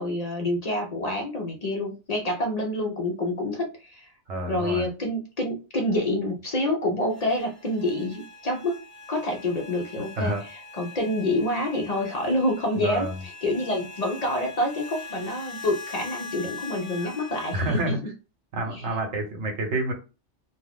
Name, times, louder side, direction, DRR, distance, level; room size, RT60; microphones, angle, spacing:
voice 1, 0.0-4.1 4.5-8.8 9.1-17.9 18.7-18.8, left 1 dB, 50° left, 0.5 m, -27 dB
voice 2, 4.3-4.9 10.2-10.4 12.8-13.2 17.0-17.1 17.5-18.0 18.5-19.9, right 1 dB, 75° right, 1.1 m, -28 dB
sound 1, 7.1-17.9, left 4 dB, 15° left, 0.9 m, -42 dB
2.4 x 2.3 x 3.4 m
omnidirectional pair, 1.2 m